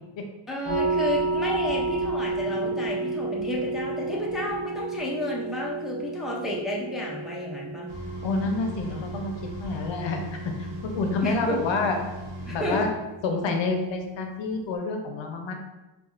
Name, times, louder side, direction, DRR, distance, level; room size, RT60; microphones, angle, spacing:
voice 1, 0.5-7.9 11.2-11.6 12.5-12.8, left 1 dB, ahead, -4 dB, 0.4 m, -31 dB
sound 1, 0.6-14.8, right 3 dB, 25° left, 0.8 m, -33 dB
sound 2, 7.9-12.9, right 1 dB, 70° right, 1.0 m, -38 dB
voice 2, 8.2-9.3 9.6-10.2 10.6-12.0 12.5-12.9 13.2-15.6, left 3 dB, 75° left, 4 dB, 0.6 m, -28 dB
4.2 x 2.4 x 2.4 m, 1.1 s
wide cardioid pair, 135°, 46 cm